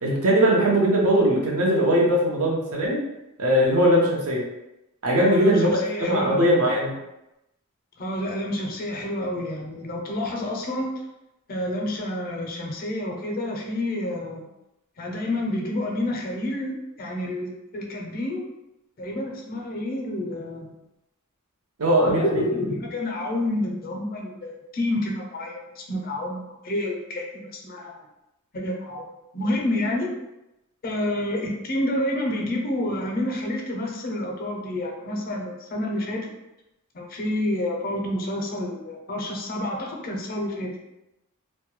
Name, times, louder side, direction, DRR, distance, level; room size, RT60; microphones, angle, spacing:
voice 1, 0.0-3.0 3.4-4.4 5.0-5.7 6.0-6.9 21.8-22.4, right 1 dB, 70° right, -2 dB, 0.7 m, -20 dB
voice 2, 5.2-6.8 8.0-10.9 11.5-14.5 15.0-18.4 19.0-20.8 22.0-28.0 28.5-29.1 29.3-30.1 30.8-36.3 36.9-40.8, left 1 dB, 40° left, 1 dB, 0.5 m, -29 dB
2.2 x 2.2 x 3.0 m, 0.92 s
head